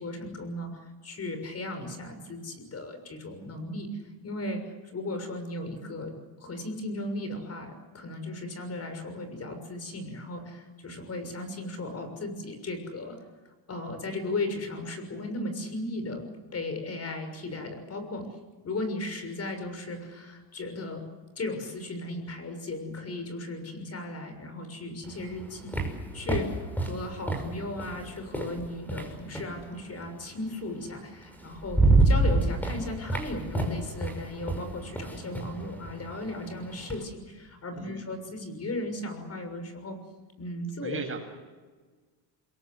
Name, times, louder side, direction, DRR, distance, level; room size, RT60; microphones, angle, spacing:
voice 1, 0.0-4.0 4.2-13.2 13.7-18.3 18.6-21.0 21.4-25.8 26.1-40.0 40.4-41.0, left 2 dB, 30° left, 7 dB, 6.6 m, -36 dB
sound 1, 25.0-29.6 30.9-31.0 31.4-37.0, right 2 dB, 5° left, 5.8 m, -28 dB
voice 2, 37.7-38.1 40.8-41.2, right 5 dB, 25° right, 2 dB, 7.6 m, -36 dB
28.0 x 22.5 x 8.1 m, 1.4 s
cardioid pair, 120°, 46 cm